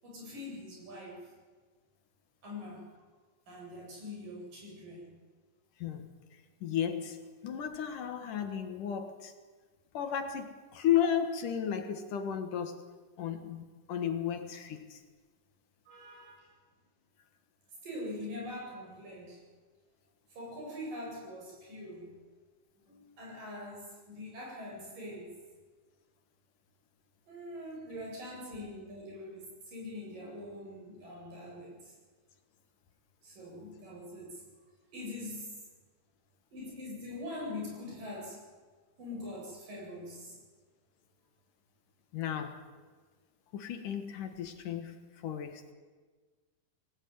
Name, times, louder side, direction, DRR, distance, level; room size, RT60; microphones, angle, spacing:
voice 1, 0.0-1.3 2.4-2.9 3.5-5.1 15.9-16.5 17.8-19.4 20.3-22.2 22.8-25.3 27.3-31.9 33.2-34.4 34.9-35.5 36.5-38.4 39.0-40.4, left 1 dB, 70° right, -3 dB, 9.8 m, -43 dB
voice 2, 6.6-9.3 9.9-12.8 13.2-15.0 42.1-42.6 43.5-45.0 45.2-45.7, left 9 dB, 65° left, 8 dB, 3.0 m, -34 dB
24.0 x 18.5 x 9.5 m, 1.4 s
omnidirectional pair, 4.1 m